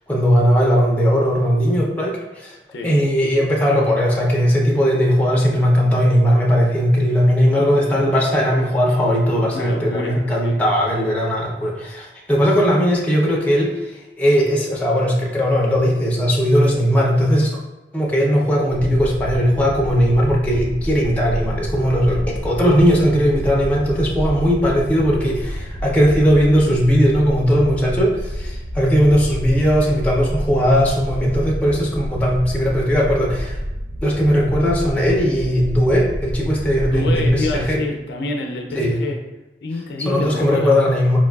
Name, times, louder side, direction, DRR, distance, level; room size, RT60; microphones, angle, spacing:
voice 1, 0.1-2.6 2.8-17.5 17.9-33.6 34.0-37.8 38.7-39.0 40.1-41.2, equal, 10° left, -3 dB, 0.5 m, -18 dB
voice 2, 9.5-10.6 36.9-39.2 39.6-40.7, left 2 dB, 70° left, 2 dB, 0.4 m, -27 dB
sound 1, 18.7-37.8, equal, 50° right, 0.4 m, -29 dB
4.6 x 2.3 x 2.3 m, 1.0 s
head